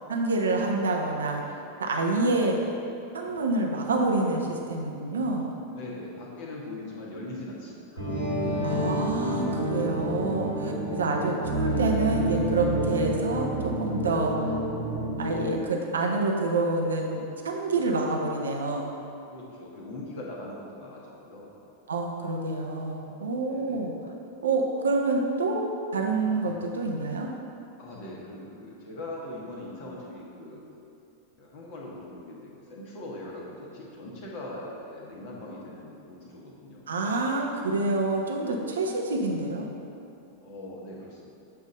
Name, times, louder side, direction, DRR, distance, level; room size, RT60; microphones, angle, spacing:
voice 1, 0.1-1.4 1.8-2.6 3.1-5.5 8.6-14.3 15.2-18.9 21.9-23.9 24.4-27.3 36.9-39.7, right 2 dB, 70° right, 1 dB, 0.6 m, -27 dB
voice 2, 5.7-8.0 10.5-11.0 19.3-21.5 23.5-23.8 27.8-30.6 31.4-36.8 40.4-41.3, left 1 dB, 45° left, -3 dB, 1.1 m, -41 dB
sound 1, 8.0-15.5, right 1 dB, 75° left, 1.4 m, -28 dB
7.6 x 2.6 x 5.1 m, 2.7 s
figure-of-eight pair, 90°, 0 cm